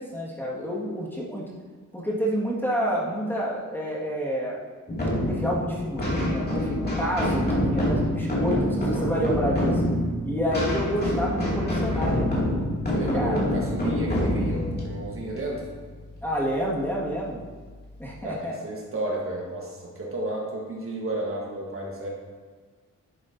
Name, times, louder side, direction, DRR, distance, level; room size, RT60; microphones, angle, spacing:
voice 1, 0.0-1.4 1.9-4.6 5.3-9.8 10.2-12.3 13.1-13.4 16.2-17.4 18.0-18.5, equal, 5° left, -6 dB, 2.0 m, -28 dB
sound 1, 4.9-16.3, left 1 dB, 30° left, 2.6 m, -26 dB
voice 2, 12.9-15.7 18.2-22.1, right 1 dB, 45° right, -2 dB, 1.5 m, -32 dB
11.0 x 7.0 x 2.8 m, 1.5 s
wide cardioid pair, 95°, 30 cm